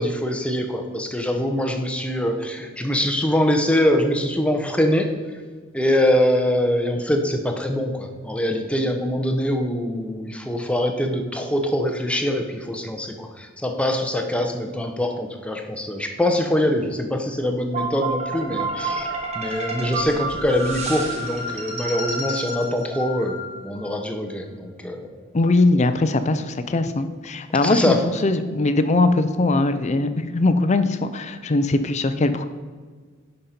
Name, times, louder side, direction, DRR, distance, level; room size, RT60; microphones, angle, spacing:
voice 1, 0.0-5.1 5.7-23.4 23.6-25.1 27.6-28.0, left 1 dB, 5° left, 4 dB, 0.7 m, -23 dB
sound 1, 17.7-23.8, right 2 dB, 30° right, 1.5 m, -29 dB
voice 2, 25.3-32.5, left 2 dB, 35° left, 10 dB, 0.5 m, -21 dB
11.0 x 5.3 x 4.3 m, 1.5 s
head